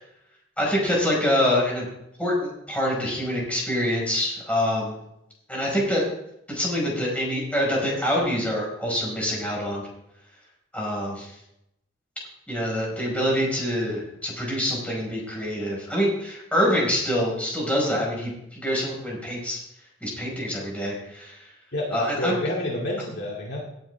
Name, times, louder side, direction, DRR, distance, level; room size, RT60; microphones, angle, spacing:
voice 1, 0.6-1.8 2.2-5.0 5.5-6.1 6.5-9.9 10.7-11.3 12.5-19.6 20.0-21.4 21.9-22.3, equal, 5° left, -3 dB, 5.0 m, -25 dB
voice 2, 21.7-23.6, left 1 dB, 60° left, -3 dB, 2.3 m, -29 dB
18.0 x 9.0 x 3.4 m, 0.81 s
head